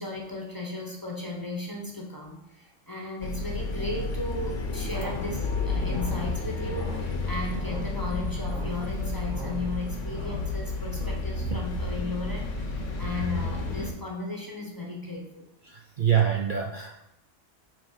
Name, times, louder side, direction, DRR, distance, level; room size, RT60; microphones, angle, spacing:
voice 1, 0.0-15.4, left 2 dB, 20° left, -1 dB, 0.8 m, -35 dB
sound 1, 3.2-13.9, left 3 dB, 80° left, 1.2 m, -31 dB
sound 2, 4.9-11.1, right 2 dB, 90° right, 2.0 m, -43 dB
voice 2, 15.6-17.0, right 8 dB, 55° right, 2 dB, 0.6 m, -26 dB
5.0 x 3.5 x 5.5 m, 0.83 s
omnidirectional pair, 1.3 m